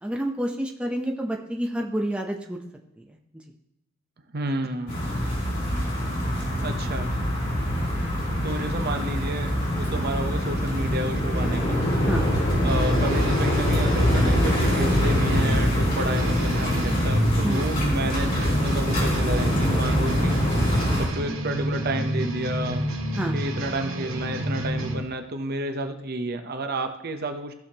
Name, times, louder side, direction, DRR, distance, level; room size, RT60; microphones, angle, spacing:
voice 1, 0.0-2.6 3.0-3.1 12.1-12.2 17.4-17.6 23.2-23.4, right 1 dB, 5° right, 1 dB, 0.7 m, -28 dB
voice 2, 4.3-5.0 6.6-7.1 8.4-11.8 12.6-20.4 20.9-22.9 23.3-27.5, right 1 dB, 50° right, 7 dB, 0.8 m, -31 dB
sound 1, 4.9-21.1, equal, 45° left, 3.1 m, -24 dB
sound 2, 12.7-25.0, equal, 85° right, 1.6 m, -30 dB
15.5 x 6.5 x 2.9 m, 0.89 s
head